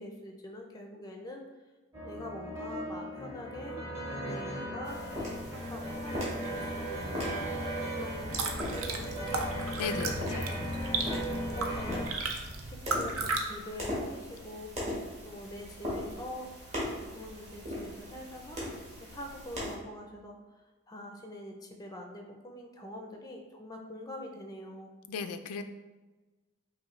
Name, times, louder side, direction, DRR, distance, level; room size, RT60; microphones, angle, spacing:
voice 1, 0.0-1.4 2.0-3.8 4.1-5.0 5.5-7.6 8.0-9.5 10.0-10.1 10.5-12.1 12.7-14.7 15.2-24.9, left 1 dB, 15° left, 2 dB, 0.4 m, -45 dB
sound 1, 1.9-12.1, equal, 15° right, 0.8 m, -37 dB
sound 2, 4.8-19.7, left 1 dB, 30° right, 1.3 m, -40 dB
sound 3, 8.1-13.4, right 3 dB, 75° right, 0.5 m, -35 dB
voice 2, 9.8-10.5 25.1-25.6, left 5 dB, 85° left, 9 dB, 0.3 m, -36 dB
5.5 x 2.7 x 3.1 m, 1.2 s
head